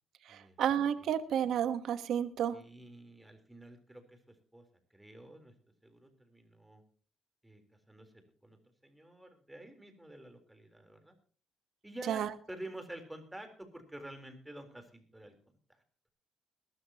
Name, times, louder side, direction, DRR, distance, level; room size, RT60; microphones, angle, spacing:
voice 1, 0.3-2.6 12.1-12.3, right 9 dB, 75° right, 11 dB, 1.2 m, -31 dB
voice 2, 2.5-4.7 4.9-5.5 5.8-6.8 7.4-7.6 7.9-8.1 8.4-11.1 11.8-15.3, right 1 dB, 10° right, 6 dB, 3.8 m, -49 dB
21.5 x 13.0 x 3.0 m, 0.40 s
cardioid pair, 85°, 0 cm